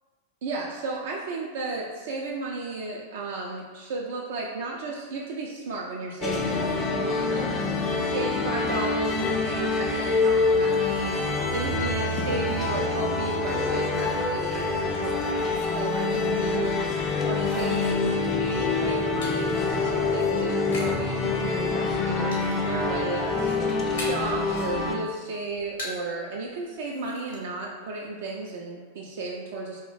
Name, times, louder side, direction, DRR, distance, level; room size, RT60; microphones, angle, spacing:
voice 1, 0.4-7.6 8.0-16.8 17.2-23.5 23.9-29.8, right 3 dB, 55° right, -2 dB, 0.3 m, -34 dB
sound 1, 6.2-24.9, left 3 dB, 25° left, 0.3 m, -26 dB
sound 2, 18.6-21.1 21.4-21.9 22.3-22.8 23.1-24.4 24.7-26.2 26.5-26.6 26.8-27.4, left 2 dB, 60° left, 0.7 m, -40 dB
2.4 x 2.0 x 3.8 m, 1.4 s
figure-of-eight pair, 90°, 0 cm